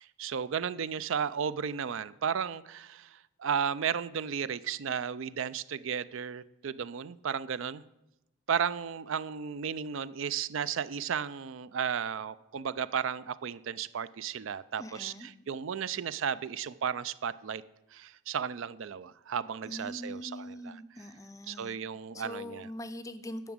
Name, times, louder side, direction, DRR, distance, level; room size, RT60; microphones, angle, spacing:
voice 1, 0.0-7.8 8.5-17.6 17.9-20.8 21.5-22.7, right 7 dB, 65° right, 16 dB, 0.4 m, -34 dB
voice 2, 14.8-15.3 19.7-21.8 22.1-23.5, left 1 dB, 15° left, 12 dB, 0.5 m, -42 dB
10.5 x 5.9 x 8.7 m, 0.89 s
head